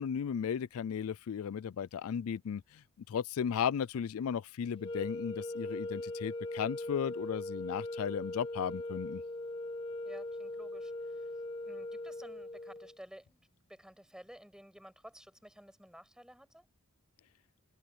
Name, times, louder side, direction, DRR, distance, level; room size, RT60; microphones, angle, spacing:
voice 1, 0.0-9.2, left 7 dB, 80° left, 0.4 m, -35 dB
sound 1, 4.8-13.0, left 2 dB, 25° left, 1.3 m, -40 dB
voice 2, 10.1-11.3 11.6-13.4 13.7-16.6, equal, 5° right, 7.5 m, -53 dB
head